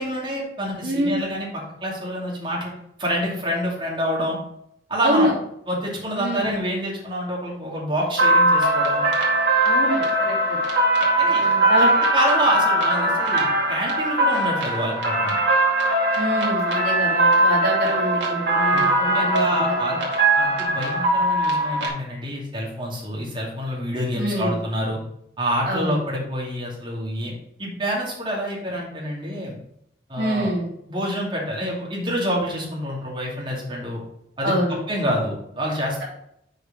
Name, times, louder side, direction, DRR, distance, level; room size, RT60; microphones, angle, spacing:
voice 1, 0.0-1.5 1.8-2.7 3.0-4.4 4.9-5.3 5.7-9.0 11.2-11.4 11.8-11.9 12.1-15.4 18.7-18.8 19.1-20.0 20.4-25.0 25.4-27.3 27.6-29.6 30.1-30.5 30.9-34.0 34.4-34.5 34.9-36.0, equal, 30° right, -4 dB, 2.6 m, -27 dB
voice 2, 0.8-1.1 5.0-5.3 6.1-6.6 9.6-10.6 11.3-11.9 16.1-20.0 24.2-24.6 25.6-26.0 30.2-30.7 34.4-34.8, equal, 60° right, -4 dB, 3.0 m, -26 dB
sound 1, 8.2-21.9, right 1 dB, 75° right, 2.1 m, -20 dB
6.5 x 5.1 x 5.0 m, 0.74 s
head